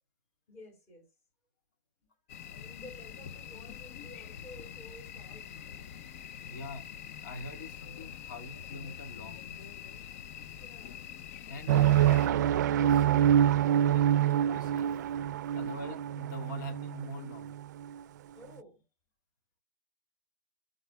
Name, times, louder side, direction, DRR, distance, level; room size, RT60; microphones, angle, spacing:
voice 1, 0.5-1.1 2.6-5.9 7.6-7.7 10.6-11.1 15.5-15.9 18.3-18.8, left 1 dB, 25° left, 4.6 m, -53 dB
sound 1, 2.3-12.3, left 9 dB, 50° left, 0.6 m, -45 dB
voice 2, 6.5-6.9 7.2-9.7 11.4-15.0 15.5-17.6, left 2 dB, 90° left, 2.1 m, -45 dB
sound 2, 11.7-18.0, right 10 dB, 75° right, 0.4 m, -26 dB
12.5 x 5.3 x 2.2 m
supercardioid pair, 175°, 10 cm